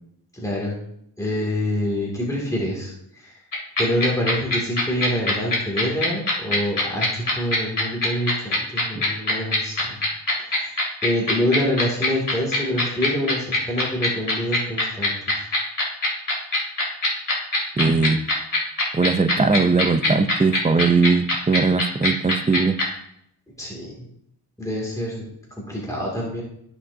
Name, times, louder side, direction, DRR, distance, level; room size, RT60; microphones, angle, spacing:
voice 1, 0.3-0.8 1.2-3.4 3.8-10.0 10.4-15.5 23.6-24.0 24.6-26.4, equal, 10° left, -3 dB, 2.4 m, -26 dB
sound 1, 3.5-22.8, left 2 dB, 55° left, 3.0 m, -21 dB
voice 2, 17.8-18.2 18.9-22.8, right 4 dB, 20° right, 8 dB, 0.6 m, -19 dB
14.0 x 5.8 x 2.7 m, 0.71 s
wide cardioid pair, 120°, 40 cm